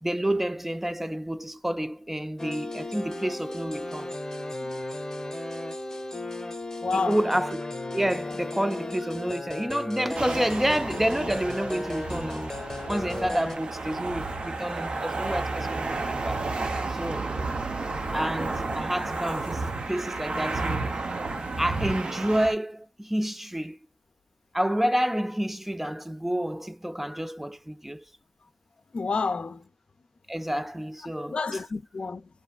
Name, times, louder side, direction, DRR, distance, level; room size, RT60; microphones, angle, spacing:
voice 1, 0.0-4.1 6.9-7.6 7.9-12.5 12.9-16.5 16.9-17.3 18.1-21.0 21.6-23.8 24.5-28.0 30.3-31.6, right 1 dB, 10° right, 0.3 m, -29 dB
sound 1, 2.4-13.6, left 2 dB, 25° left, 0.8 m, -35 dB
voice 2, 6.8-7.2 28.9-29.6 31.3-32.3, left 4 dB, 60° left, 0.5 m, -29 dB
sound 2, 10.1-22.5, right 3 dB, 55° right, 0.6 m, -32 dB
2.6 x 2.3 x 2.3 m
cardioid pair, 50°, 2 cm